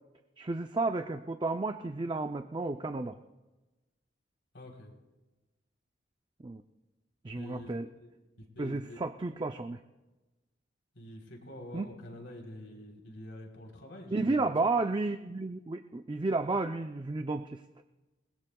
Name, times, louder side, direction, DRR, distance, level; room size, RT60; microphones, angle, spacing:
voice 1, 0.4-3.2 6.4-6.6 7.2-7.9 8.6-9.8 11.7-11.9 14.1-17.6, right 3 dB, 25° right, 7 dB, 0.5 m, -32 dB
voice 2, 4.5-4.9 7.3-7.7 8.0-8.1 8.6-9.1 10.9-14.5, left 1 dB, 75° left, 0 dB, 3.6 m, -46 dB
29.0 x 20.5 x 2.3 m, 1.1 s
head